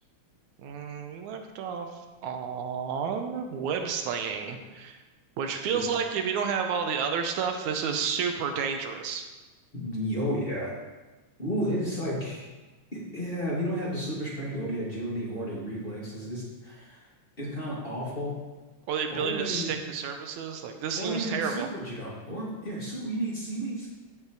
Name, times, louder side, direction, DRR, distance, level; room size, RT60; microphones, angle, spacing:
voice 1, 0.6-1.9 2.2-5.0 5.4-9.3 18.9-21.7, right 6 dB, 85° right, 5 dB, 2.3 m, -30 dB
voice 2, 9.7-10.7 11.4-12.5 12.9-17.0 17.4-18.3 19.1-19.7 20.9-23.9, equal, 20° left, -7 dB, 2.6 m, -32 dB
15.5 x 5.3 x 4.8 m, 1.2 s
omnidirectional pair, 3.4 m